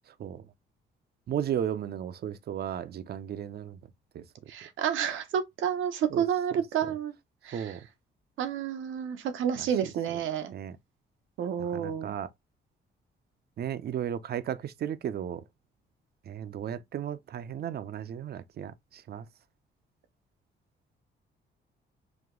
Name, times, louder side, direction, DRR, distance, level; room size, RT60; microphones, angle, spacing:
voice 1, 1.3-3.8 4.1-4.2 6.1-6.2 7.5-7.8 10.5-10.8 11.6-12.3 13.6-15.4 16.3-19.3, right 9 dB, 55° right, 0.6 m, -34 dB
voice 2, 4.5-7.1 7.4-7.8 8.4-10.5 11.4-12.1, right 8 dB, 80° right, 0.9 m, -30 dB
5.0 x 2.3 x 3.7 m
cardioid pair, 90°, 20 cm